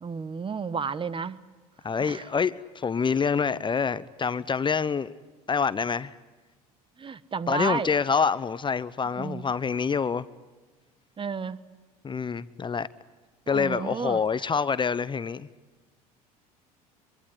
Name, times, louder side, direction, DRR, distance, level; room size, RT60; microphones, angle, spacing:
voice 1, 0.0-1.4 2.0-2.3 7.0-7.9 9.2-9.5 11.2-11.6 13.5-14.2, right 5 dB, 25° right, 18 dB, 1.2 m, -32 dB
voice 2, 1.8-5.1 5.5-6.2 7.5-10.3 12.0-12.9 13.5-15.5, left 6 dB, 25° left, 16 dB, 0.8 m, -26 dB
24.0 x 23.5 x 9.7 m, 1.3 s
hypercardioid pair, 75°, 20 cm